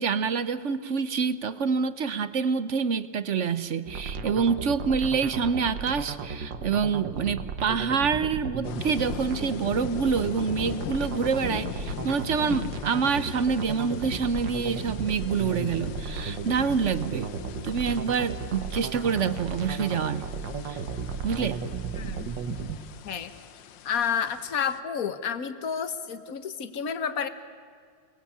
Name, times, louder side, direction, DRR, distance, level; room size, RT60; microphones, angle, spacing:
voice 1, 0.0-17.3 17.6-20.2 20.7-20.8 21.2-21.6, right 6 dB, 50° right, 14 dB, 1.0 m, -27 dB
sound 1, 3.9-22.8, right 5 dB, 80° right, 2.0 m, -35 dB
sound 2, 8.6-24.8, left 9 dB, 85° left, 1.6 m, -41 dB
voice 2, 23.0-23.3 23.8-27.3, left 7 dB, 55° left, 12 dB, 1.7 m, -30 dB
29.5 x 20.5 x 8.7 m, 2.2 s
omnidirectional pair, 2.0 m